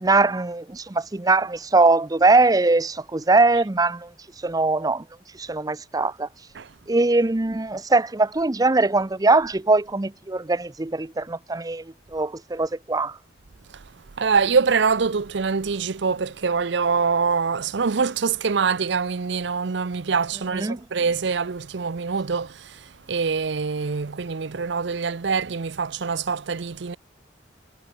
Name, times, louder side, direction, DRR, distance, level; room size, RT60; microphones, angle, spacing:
voice 1, 0.0-5.1 5.3-6.3 6.9-13.2 20.5-20.9, right 3 dB, 20° right, 0.6 m, -21 dB
voice 2, 14.2-22.7 23.1-27.0, right 5 dB, 70° right, 0.6 m, -24 dB
head